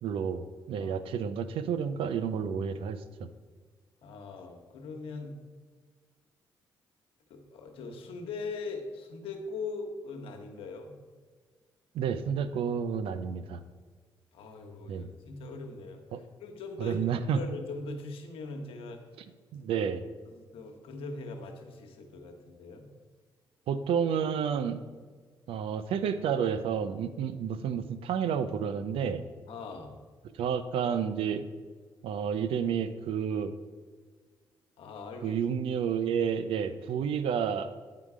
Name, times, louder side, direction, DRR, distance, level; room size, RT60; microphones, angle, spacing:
voice 1, 0.0-3.3 11.9-13.6 14.9-15.1 16.1-16.2 16.8-17.4 19.5-20.0 23.7-24.8 25.5-29.2 30.4-31.4 32.0-33.5 35.2-37.7, right 7 dB, 80° right, 12 dB, 0.5 m, -30 dB
voice 2, 0.8-1.1 4.0-5.3 7.3-10.9 14.3-17.0 17.3-19.0 19.7-19.9 20.3-22.8 29.5-29.9 34.8-35.6, left 3 dB, 85° left, 3 dB, 1.0 m, -41 dB
9.0 x 3.8 x 4.8 m, 1.5 s
cardioid pair, 70°, 9 cm